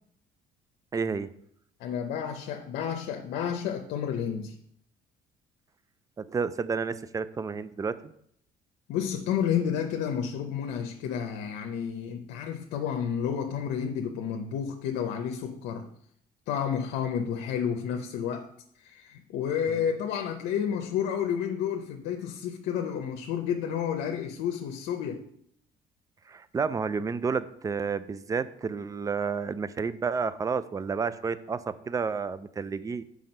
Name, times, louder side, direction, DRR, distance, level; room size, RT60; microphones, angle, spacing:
voice 1, 0.9-1.3 6.2-8.1 19.7-19.8 26.3-33.0, right 5 dB, 20° right, 15 dB, 0.4 m, -31 dB
voice 2, 1.8-4.5 8.9-15.9 16.5-18.5 18.8-25.2, left 8 dB, 85° left, 4 dB, 0.7 m, -31 dB
5.9 x 4.9 x 5.3 m, 0.69 s
cardioid pair, 110°, 17 cm